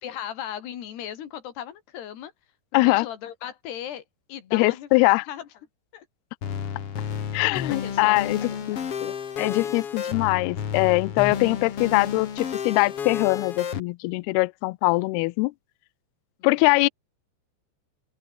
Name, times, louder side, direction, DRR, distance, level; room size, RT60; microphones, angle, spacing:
voice 1, 0.0-2.3 2.7-4.9 5.3-5.5 5.9-6.1 7.0-7.1 7.7-8.9, left 10 dB, 65° left, 4.3 m, -37 dB
voice 2, 2.7-3.1 4.5-5.3 7.3-8.4 8.7-15.5 16.4-16.9, left 24 dB, 85° left, 2.2 m, -22 dB
sound 1, 6.4-13.8, left 7 dB, 45° left, 2.2 m, -31 dB
open air
omnidirectional pair, 5.2 m